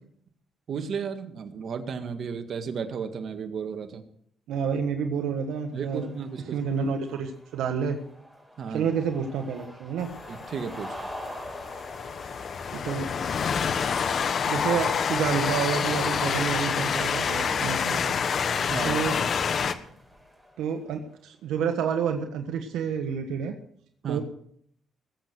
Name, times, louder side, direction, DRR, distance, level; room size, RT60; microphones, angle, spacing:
voice 1, 0.7-4.0 5.7-6.6 8.6-8.9 10.3-11.0 18.7-19.0 24.0-24.2, right 6 dB, 60° right, 6 dB, 1.9 m, -33 dB
voice 2, 4.5-6.1 6.5-8.0 8.7-10.1 12.7-13.1 14.5-18.1 18.8-19.2 20.6-23.5 24.1-24.2, right 7 dB, 85° right, 5 dB, 1.4 m, -29 dB
sound 1, 5.3-20.9, equal, ahead, 5.4 m, -46 dB
Train, 10.0-19.7, left 6 dB, 55° left, 1.1 m, -28 dB
20.0 x 8.0 x 6.3 m, 0.65 s
cardioid pair, 90°, 0 cm